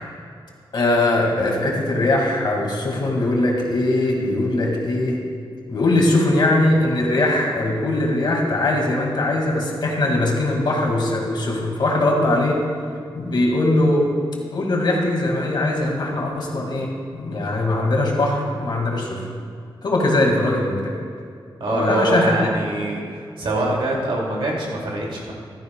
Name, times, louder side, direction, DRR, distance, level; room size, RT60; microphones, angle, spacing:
voice 1, 0.7-5.2 5.7-12.6 13.1-14.1 14.5-19.3 19.8-21.0 21.7-22.5, left 2 dB, 60° left, -1 dB, 2.2 m, -21 dB
voice 2, 21.6-25.3, right 1 dB, 80° right, -3 dB, 2.7 m, -24 dB
15.0 x 13.0 x 2.4 m, 2.2 s
wide cardioid pair, 145°, 9 cm